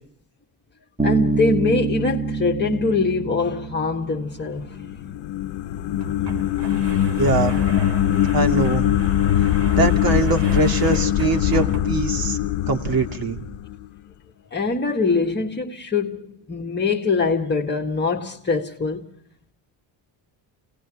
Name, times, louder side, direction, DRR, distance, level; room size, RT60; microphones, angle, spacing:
voice 1, 1.0-4.9 14.5-19.1, left 4 dB, 25° left, 1.7 m, -23 dB
Bass guitar, 1.0-4.7, right 4 dB, 15° right, 1.4 m, -26 dB
sound 1, 4.6-13.9, left 12 dB, 80° left, 0.8 m, -22 dB
sound 2, 4.6-4.7 4.9-5.0 5.8-12.2, right 5 dB, 70° right, 2.8 m, -37 dB
voice 2, 6.9-7.7 8.3-9.0 9.7-12.4 12.7-13.5, right 4 dB, 50° right, 2.7 m, -23 dB
29.5 x 18.5 x 4.9 m
cardioid pair, 100°, 45 cm